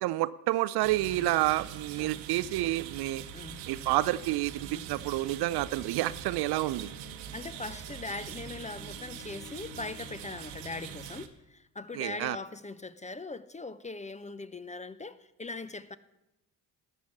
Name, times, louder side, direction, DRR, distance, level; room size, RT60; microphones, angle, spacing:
voice 1, 0.0-3.2 3.7-6.9 11.9-12.4, right 16 dB, 55° right, 0.5 m, -29 dB
sound 1, 0.8-11.3, right 9 dB, 80° right, 0.9 m, -43 dB
sound 2, 6.3-11.5, left 6 dB, 80° left, 1.8 m, -55 dB
voice 2, 7.3-16.0, left 3 dB, 15° left, 0.6 m, -41 dB
12.0 x 8.1 x 7.2 m
figure-of-eight pair, 45°, 49 cm